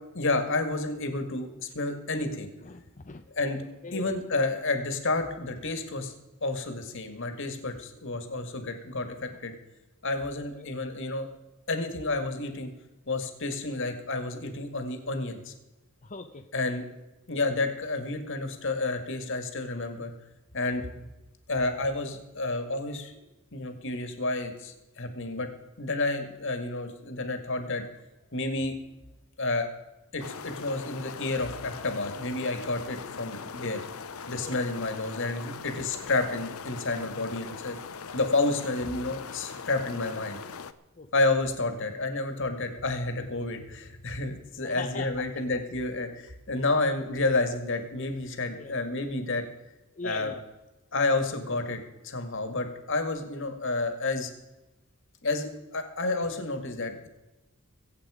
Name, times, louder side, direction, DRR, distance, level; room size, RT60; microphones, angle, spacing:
voice 1, 0.1-2.5 3.3-3.6 3.9-6.2 6.4-9.6 10.0-11.3 11.7-12.7 13.1-15.5 16.5-16.8 17.3-20.1 20.5-20.9 21.5-23.1 23.5-25.5 25.8-27.9 28.3-28.7 29.4-29.7 30.1-33.8 34.3-37.8 38.1-40.4 41.1-49.4 50.0-50.3 50.9-54.3 55.2-57.1, left 2 dB, 60° left, 7 dB, 2.0 m, -30 dB
voice 2, 2.6-3.2 3.8-4.1 10.5-10.7 16.0-16.5 34.4-34.5 41.0-41.1 44.6-45.2 48.5-48.8 49.9-50.4, left 4 dB, 35° left, 4 dB, 0.8 m, -40 dB
sound 1, 30.2-40.7, left 5 dB, 80° left, 0.8 m, -41 dB
22.5 x 8.4 x 5.0 m, 1.1 s
head